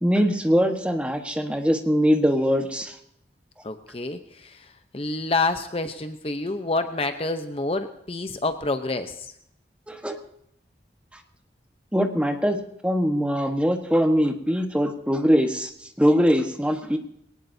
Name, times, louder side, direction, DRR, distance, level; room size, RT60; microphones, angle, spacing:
voice 1, 0.0-2.9 9.9-10.2 11.9-12.6 12.8-15.7 16.0-17.0, equal, 5° right, 5 dB, 1.3 m, -22 dB
voice 2, 3.6-4.7 4.9-9.3, left 3 dB, 30° left, 8 dB, 0.8 m, -28 dB
21.0 x 18.5 x 2.7 m, 0.74 s
head